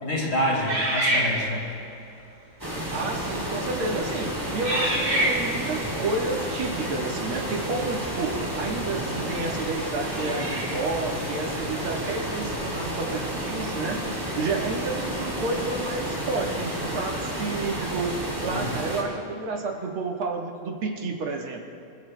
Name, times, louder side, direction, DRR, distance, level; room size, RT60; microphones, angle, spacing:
voice 1, 0.0-1.6 18.5-18.7, equal, 35° left, -4 dB, 3.3 m, -27 dB
sound 1, 0.7-1.8 2.6-2.9 3.5-3.9 4.6-5.8 8.5-8.6 10.1-10.9, right 1 dB, 35° right, 2.8 m, -27 dB
sound 2, 2.6-19.0, right 1 dB, 10° right, 2.6 m, -31 dB
voice 2, 2.9-14.0 14.4-18.2 18.4-21.7, right 3 dB, 75° right, 0 dB, 2.2 m, -30 dB
25.0 x 14.5 x 2.2 m, 2.7 s
omnidirectional pair, 2.3 m